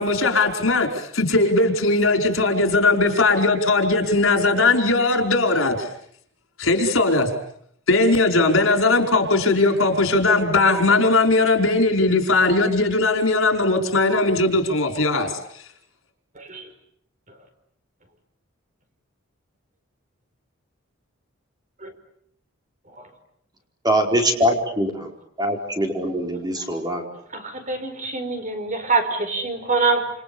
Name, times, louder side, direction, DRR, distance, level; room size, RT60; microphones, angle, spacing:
voice 1, 0.0-5.9 6.6-7.3 7.9-15.3, left 2 dB, 80° left, 4 dB, 5.0 m, -19 dB
voice 2, 23.8-25.1 25.4-27.0, equal, 20° right, 2 dB, 4.8 m, -22 dB
voice 3, 27.3-30.1, right 3 dB, 40° right, 6 dB, 5.1 m, -24 dB
28.5 x 28.5 x 7.1 m, 0.67 s
head